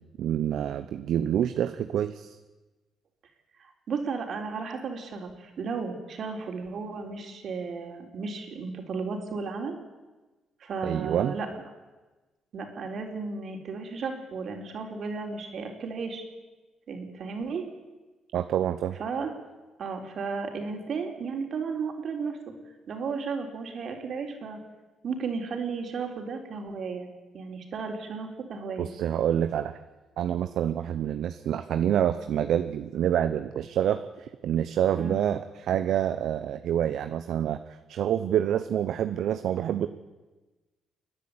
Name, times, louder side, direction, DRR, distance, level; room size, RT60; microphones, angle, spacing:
voice 1, 0.2-2.4 10.8-11.3 18.3-19.0 28.8-29.7 30.2-37.6 37.9-39.9, right 10 dB, 75° right, 10 dB, 0.9 m, -27 dB
voice 2, 3.6-9.8 10.6-11.5 12.5-16.2 16.9-17.6 19.0-19.3 19.8-22.4 22.9-24.6 25.0-28.9 34.9-35.2, right 5 dB, 60° right, 3 dB, 4.0 m, -34 dB
29.5 x 10.5 x 8.7 m, 1.2 s
cardioid pair, 90°, 0 cm